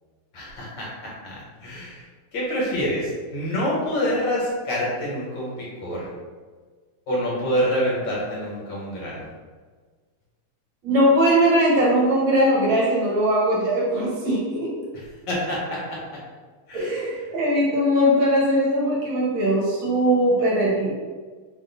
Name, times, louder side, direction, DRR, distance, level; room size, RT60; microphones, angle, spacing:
voice 1, 0.3-2.0 2.3-6.0 7.1-9.2 15.3-16.2 16.7-17.0, equal, 60° left, -5 dB, 1.5 m, -27 dB
voice 2, 10.8-14.8 16.7-20.9, equal, 65° right, -4 dB, 1.5 m, -20 dB
3.6 x 2.5 x 3.9 m, 1.4 s
omnidirectional pair, 2.4 m